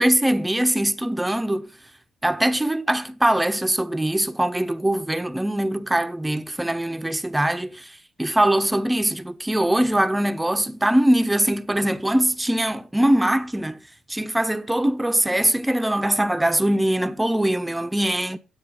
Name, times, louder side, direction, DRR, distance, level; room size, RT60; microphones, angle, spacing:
voice 1, 0.0-1.7 2.2-13.8 14.1-18.4, right 1 dB, 10° right, 0.8 m, -22 dB
9.7 x 8.6 x 4.1 m
cardioid pair, 90°, 0 cm